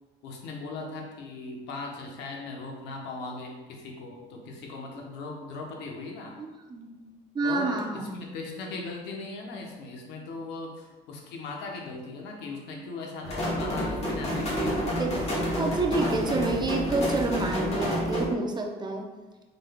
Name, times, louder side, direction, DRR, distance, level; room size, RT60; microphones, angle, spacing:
voice 1, 0.2-6.4 7.4-14.8, left 3 dB, 90° left, 0 dB, 0.8 m, -38 dB
voice 2, 6.4-7.0 7.3-8.1 14.4-15.2 15.6-19.1, right 3 dB, 25° right, 2 dB, 0.6 m, -29 dB
sound 1, 13.2-18.3, equal, 40° left, 1.5 m, -29 dB
5.0 x 3.9 x 2.2 m, 1.2 s
cardioid pair, 110°, 17 cm